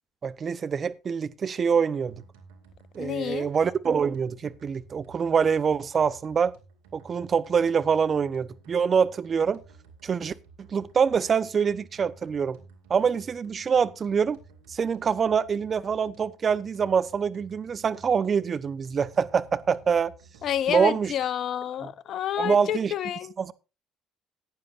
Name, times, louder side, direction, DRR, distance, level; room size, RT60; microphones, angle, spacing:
voice 1, 0.2-2.2 2.9-6.5 6.9-9.6 10.0-12.6 12.9-14.4 14.7-20.1 20.7-21.1 21.8-21.9 22.4-22.9 23.4-23.5, right 6 dB, 45° right, 0.9 m, -25 dB
sound 1, 2.0-21.2, right 4 dB, 90° right, 2.5 m, -54 dB
voice 2, 3.0-3.5 20.4-23.3, left 10 dB, 60° left, 0.8 m, -29 dB
16.0 x 9.8 x 2.6 m
hypercardioid pair, 65°, 0 cm